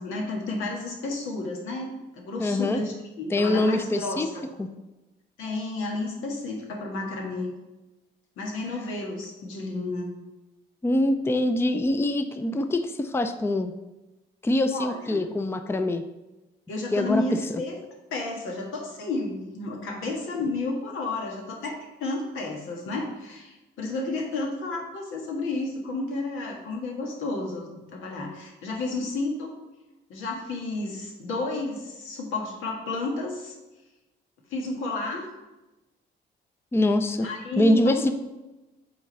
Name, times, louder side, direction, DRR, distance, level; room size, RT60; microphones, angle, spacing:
voice 1, 0.0-4.5 5.4-7.5 8.4-10.1 14.7-15.2 16.7-17.8 18.1-29.5 30.1-33.5 34.5-35.2 37.2-38.1, left 2 dB, 90° left, 0 dB, 1.6 m, -32 dB
voice 2, 2.4-2.8 3.3-4.3 4.6-4.7 10.8-13.7 14.4-16.0 16.9-17.2 36.7-37.3 37.6-38.1, left 1 dB, 10° left, 8 dB, 0.5 m, -24 dB
7.0 x 3.8 x 5.4 m, 1.0 s
cardioid pair, 90°, 20 cm